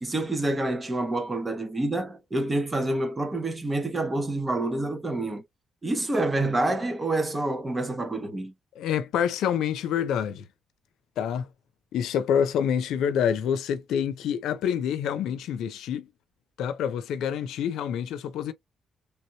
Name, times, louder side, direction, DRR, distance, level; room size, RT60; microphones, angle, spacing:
voice 1, 0.0-5.4 5.8-8.5, right 2 dB, 20° right, 1.1 m, -27 dB
voice 2, 8.8-10.5 11.2-11.5 11.9-16.1 16.6-18.5, left 8 dB, 85° left, 0.6 m, -27 dB
3.4 x 2.9 x 2.9 m
cardioid pair, 120°, 0 cm